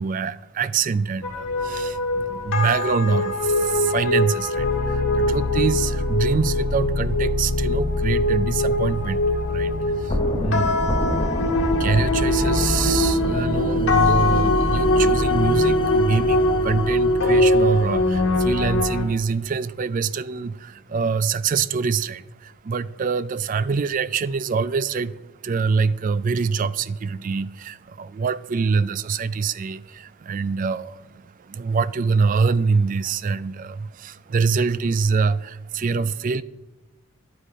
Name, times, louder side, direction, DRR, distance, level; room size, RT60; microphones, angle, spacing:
voice 1, 0.0-10.7 11.7-36.4, right 5 dB, 40° right, 0.3 m, -25 dB
sound 1, 1.2-19.0, left 1 dB, 60° left, 1.7 m, -22 dB
sound 2, 4.6-13.2, left 3 dB, 75° left, 0.6 m, -27 dB
sound 3, 10.1-18.9, left 1 dB, 20° left, 0.6 m, -28 dB
11.5 x 9.1 x 4.9 m
head